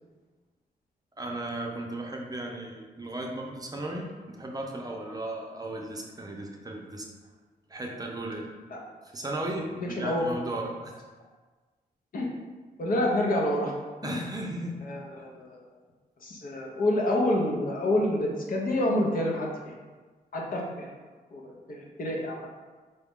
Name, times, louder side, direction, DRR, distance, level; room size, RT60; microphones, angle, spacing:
voice 1, 1.2-7.1 7.7-8.5 9.1-11.0 14.0-14.9, right 1 dB, 25° right, 0 dB, 0.5 m, -35 dB
voice 2, 9.8-10.3 12.1-12.3 12.8-13.7 14.0-14.2 14.8-15.6 16.2-19.7 20.3-20.9 21.3-22.3, left 1 dB, 60° left, -2 dB, 0.8 m, -28 dB
4.0 x 2.3 x 3.5 m, 1.4 s
cardioid pair, 85°, 16 cm